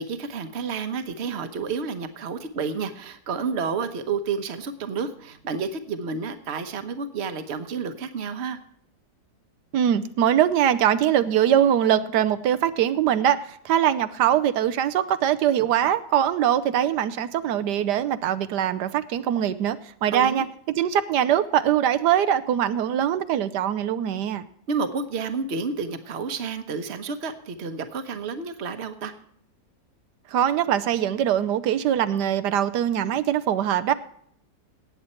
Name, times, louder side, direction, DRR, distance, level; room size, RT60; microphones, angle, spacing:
voice 1, 0.0-8.6 20.1-20.5 24.7-29.1, right 5 dB, 45° right, 9 dB, 1.1 m, -30 dB
voice 2, 9.7-20.4 20.8-24.4 30.3-33.9, right 10 dB, 85° right, 10 dB, 1.3 m, -22 dB
18.0 x 8.1 x 4.3 m, 0.66 s
omnidirectional pair, 1.8 m